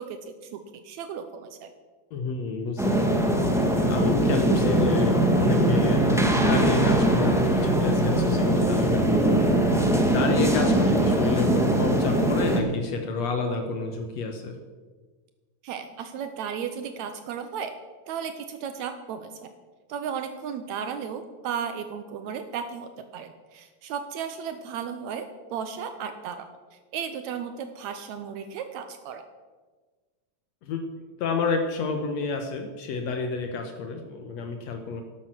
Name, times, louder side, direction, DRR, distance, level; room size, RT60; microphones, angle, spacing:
voice 1, 0.0-1.7 15.6-17.7 18.1-19.3 19.9-26.5 26.9-29.2, right 7 dB, 80° right, 8 dB, 2.1 m, -35 dB
voice 2, 2.1-3.3 3.9-14.6 30.6-30.9 31.2-35.0, left 4 dB, 70° left, 5 dB, 2.1 m, -30 dB
sound 1, 2.8-12.6, right 1 dB, ahead, 0.9 m, -21 dB
12.0 x 12.0 x 6.1 m, 1.3 s
omnidirectional pair, 3.3 m